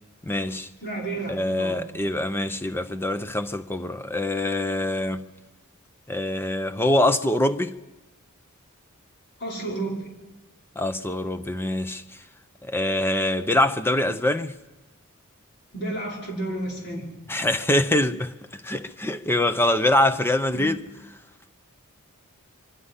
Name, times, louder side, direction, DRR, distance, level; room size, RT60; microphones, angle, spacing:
voice 1, 0.2-0.7 1.3-5.3 6.1-7.8 10.8-12.0 12.6-14.5 17.3-18.3 18.6-20.8, left 1 dB, 10° left, 0.7 m, -24 dB
voice 2, 0.8-1.8 9.4-10.1 15.7-17.0 20.5-20.7, right 2 dB, 55° left, 5.5 m, -31 dB
24.5 x 23.5 x 5.6 m
head